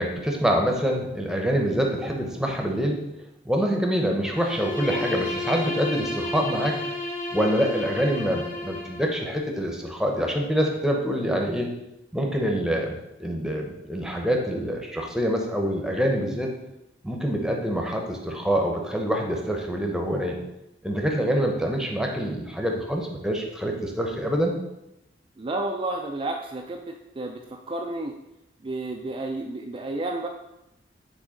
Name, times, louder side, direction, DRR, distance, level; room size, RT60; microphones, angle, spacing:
voice 1, 0.0-3.1 3.4-6.8 7.3-11.7 12.1-16.5 17.0-20.4 20.8-24.6, equal, 5° right, 1 dB, 0.8 m, -26 dB
Bowed string instrument, 4.2-9.1, left 2 dB, 65° left, 2.4 m, -32 dB
voice 2, 25.4-28.1 28.6-30.3, right 2 dB, 30° right, 2 dB, 0.4 m, -31 dB
6.1 x 3.6 x 5.0 m, 0.88 s
head